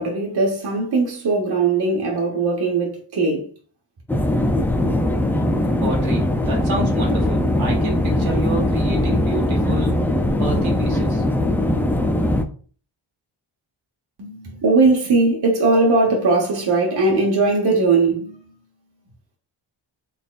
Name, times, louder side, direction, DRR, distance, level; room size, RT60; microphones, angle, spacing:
voice 1, 0.0-3.5 14.2-18.5, right 3 dB, 55° right, 1.2 m, -19 dB
sound 1, 4.1-12.4, left 1 dB, 5° left, 0.3 m, -20 dB
voice 2, 5.8-10.0 10.4-11.2, right 2 dB, 75° right, 1.5 m, -29 dB
4.2 x 3.5 x 2.4 m
wide cardioid pair, 95°, 47 cm